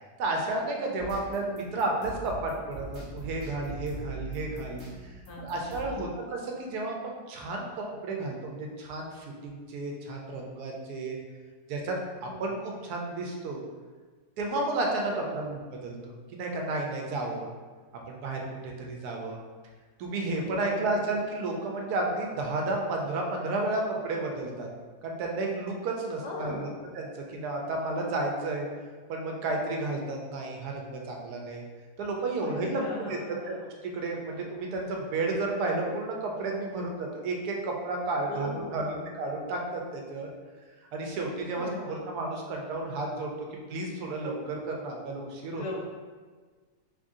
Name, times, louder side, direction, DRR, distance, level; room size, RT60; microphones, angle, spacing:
voice 1, 0.2-11.2 11.7-13.6 14.4-17.5 18.1-19.4 20.0-24.7 25.0-26.7 26.9-28.7 29.1-31.6 32.0-33.2 33.5-33.6 33.9-40.3 40.9-45.6, right 2 dB, 80° right, 0 dB, 1.1 m, -32 dB
sound 1, 1.0-6.1, right 2 dB, 55° right, 0.8 m, -42 dB
voice 2, 5.3-6.3 12.2-12.3 15.0-15.4 20.5-21.1 26.2-26.8 32.4-33.7 38.3-39.1 41.5-42.1 45.6-45.9, left 2 dB, 85° left, -2 dB, 1.4 m, -39 dB
3.2 x 2.6 x 3.6 m, 1.5 s
omnidirectional pair, 1.7 m